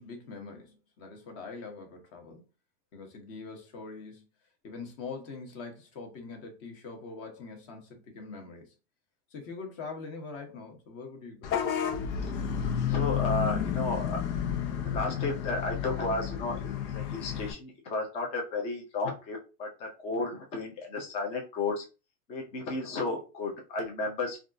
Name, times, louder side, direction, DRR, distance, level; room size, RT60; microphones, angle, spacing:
voice 1, 0.0-2.4 2.9-4.2 4.6-8.7 9.3-11.5, left 4 dB, 30° left, 0.8 m, -43 dB
Vehicle horn car horn honking / Bus, 11.4-17.5, left 8 dB, 90° left, 0.8 m, -31 dB
voice 2, 12.9-14.2 14.8-21.8 22.3-24.4, left 3 dB, 15° left, 0.3 m, -33 dB
3.4 x 2.4 x 2.5 m
supercardioid pair, 145°, 48 cm